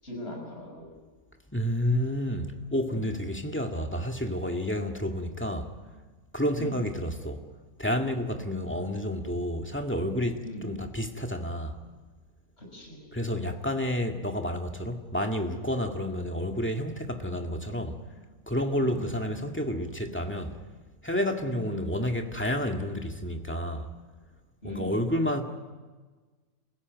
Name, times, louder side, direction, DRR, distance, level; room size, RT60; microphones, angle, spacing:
voice 1, 0.0-0.9 2.9-3.0 6.5-6.8 10.4-10.8 12.6-13.1 18.8-19.1 21.4-21.7 24.6-25.1, left 1 dB, 45° left, 6.4 m, -40 dB
voice 2, 1.5-5.7 6.3-7.4 7.8-11.8 13.1-18.0 18.5-20.6 21.0-23.9 24.6-25.4, equal, 10° left, 1.8 m, -30 dB
29.5 x 16.0 x 9.4 m
omnidirectional pair, 1.5 m